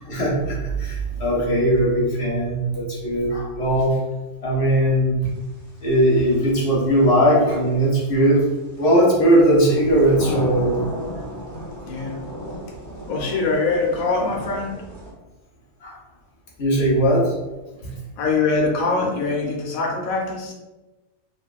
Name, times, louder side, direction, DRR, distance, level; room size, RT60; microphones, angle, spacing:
voice 1, 0.0-4.0 4.4-5.2 5.8-8.5 8.8-10.8 15.8-16.0 16.6-17.3, right 1 dB, 60° left, -4 dB, 0.9 m, -19 dB
sound 1, 5.2-15.1, equal, 30° left, 0.3 m, -35 dB
voice 2, 11.9-12.2 13.1-14.8 18.2-20.5, left 3 dB, 85° left, -1 dB, 1.0 m, -23 dB
2.8 x 2.2 x 2.3 m, 1.1 s
omnidirectional pair, 1.4 m